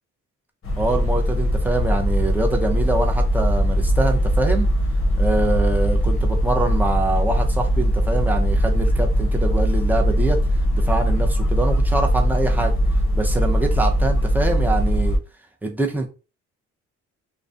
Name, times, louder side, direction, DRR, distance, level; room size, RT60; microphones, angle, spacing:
sound 1, 0.6-15.2, equal, 45° left, 0.7 m, -20 dB
voice 1, 0.8-4.7 5.2-10.4 10.7-12.7 13.1-15.2 15.6-16.1, right 2 dB, 5° right, 1 dB, 0.6 m, -24 dB
2.3 x 2.2 x 2.6 m, 0.32 s
cardioid pair, 90°, 30 cm